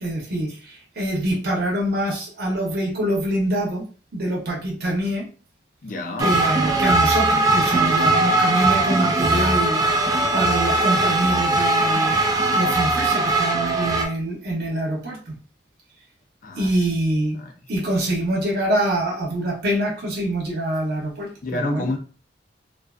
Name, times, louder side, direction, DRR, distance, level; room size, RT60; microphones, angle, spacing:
voice 1, 0.0-3.8 4.1-5.3 6.2-9.8 10.3-12.2 12.5-15.4 16.6-17.4 17.7-21.9, right 1 dB, 60° right, -2 dB, 0.7 m, -25 dB
voice 2, 5.8-6.3 16.4-16.7 17.4-17.5 21.4-22.0, left 2 dB, 45° left, 4 dB, 0.5 m, -28 dB
sound 1, 6.2-14.1, right 2 dB, 20° right, 0.3 m, -20 dB
2.4 x 2.3 x 2.2 m, 0.38 s
head